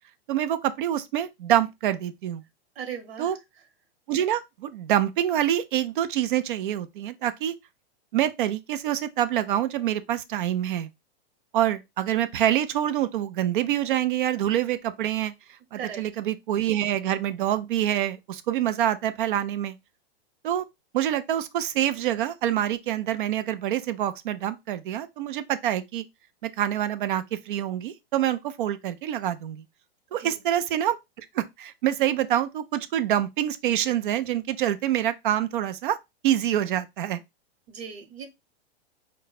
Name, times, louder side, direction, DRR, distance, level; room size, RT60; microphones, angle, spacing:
voice 1, 0.3-2.4 3.2-3.4 4.1-7.5 8.1-10.9 11.5-15.3 15.7-19.8 20.4-20.7 20.9-26.1 26.4-29.6 30.1-36.0 36.2-37.2, right 11 dB, 55° right, 0.6 m, -26 dB
voice 2, 2.7-3.3 15.8-16.0 30.2-30.4 36.5-36.6 37.7-38.3, right 7 dB, 75° right, 1.2 m, -37 dB
5.2 x 2.2 x 4.0 m
supercardioid pair, 160°, 31 cm